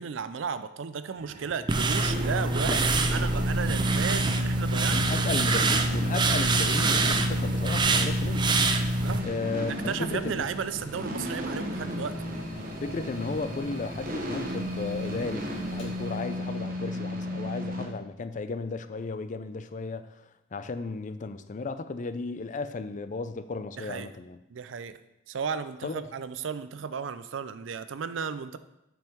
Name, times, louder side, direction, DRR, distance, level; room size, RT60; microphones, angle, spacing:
voice 1, 0.0-5.7 9.0-9.3 9.7-12.2 23.8-24.1 24.5-25.0 25.3-28.6, right 6 dB, 80° right, 13 dB, 0.4 m, -34 dB
sound 1, 1.2-17.9, equal, 50° right, 1.1 m, -34 dB
Mechanical fan, 1.4-17.7, equal, 75° left, 1.8 m, -46 dB
sound 2, 1.7-9.2, right 2 dB, 25° right, 0.5 m, -25 dB
voice 2, 4.9-8.6 9.2-10.5 12.8-24.4 25.8-26.0, left 3 dB, 40° left, 11 dB, 0.4 m, -34 dB
7.3 x 5.5 x 4.5 m, 0.89 s
head